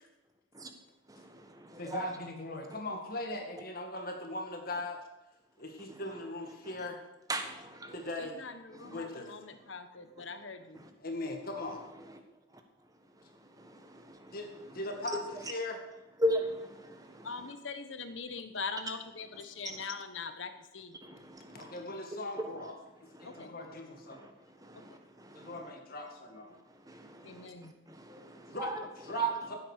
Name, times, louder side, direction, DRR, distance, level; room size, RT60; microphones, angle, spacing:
voice 1, 1.1-2.0 6.7-6.9 7.3-7.9 8.9-9.0 13.6-14.4 16.2-17.3 21.0-21.8 23.2-23.5 24.1-24.3 24.6-25.7 26.9-27.5 27.9-28.8 29.1-29.3, right 1 dB, 20° right, 1.5 m, -37 dB
voice 2, 1.8-5.0 5.6-7.0 7.9-8.4 8.9-9.3 11.0-11.8 14.3-15.8 21.5-22.8 23.2-24.2 25.4-26.6 28.5-29.6, left 2 dB, 45° left, 1.9 m, -39 dB
voice 3, 8.2-10.8 17.2-21.0 23.2-23.5 24.7-25.0 27.2-27.7, left 4 dB, 70° left, 1.2 m, -42 dB
15.5 x 8.5 x 6.6 m
head